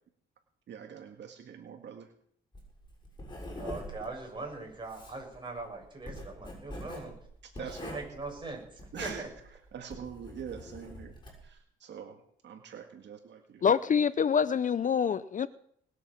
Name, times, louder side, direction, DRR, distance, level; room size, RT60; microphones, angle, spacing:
voice 1, 0.7-2.1 7.4-8.0 8.9-9.3 9.7-11.1 11.4-13.7, right 7 dB, 65° right, 1.9 m, -44 dB
Writing, 2.5-11.5, left 1 dB, 20° left, 6.7 m, -44 dB
voice 2, 3.6-7.1 7.6-8.6 9.0-9.3, right 3 dB, 25° right, 7.3 m, -41 dB
voice 3, 13.6-15.5, left 7 dB, 40° left, 0.6 m, -26 dB
20.0 x 8.4 x 7.2 m
cardioid pair, 90°, 20 cm